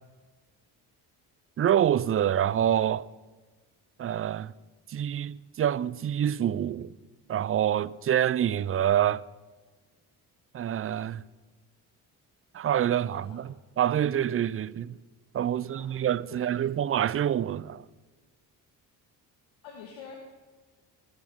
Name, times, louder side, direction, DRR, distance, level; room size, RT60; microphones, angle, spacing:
voice 1, 1.6-3.1 4.0-4.5 4.9-6.9 7.3-9.2 10.5-11.2 12.5-15.0 15.3-17.9, right 10 dB, 30° right, 0.4 m, -26 dB
voice 2, 13.0-13.5 15.5-15.9 16.3-16.7 19.6-20.2, left 6 dB, 70° left, 1.8 m, -47 dB
20.0 x 9.8 x 3.6 m
hypercardioid pair, 50°, 49 cm